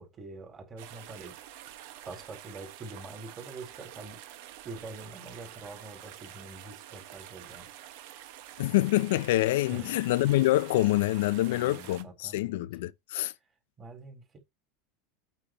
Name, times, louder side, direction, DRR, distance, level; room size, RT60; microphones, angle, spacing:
voice 1, 0.0-1.7 2.0-4.2 4.6-7.9 9.7-10.0 11.5-12.7 13.8-14.4, right 3 dB, 20° right, 4.4 m, -45 dB
sound 1, 0.8-12.0, right 12 dB, 60° right, 1.6 m, -48 dB
voice 2, 8.6-13.3, left 17 dB, 75° left, 0.6 m, -26 dB
8.7 x 8.5 x 3.1 m
supercardioid pair, 165°, 0 cm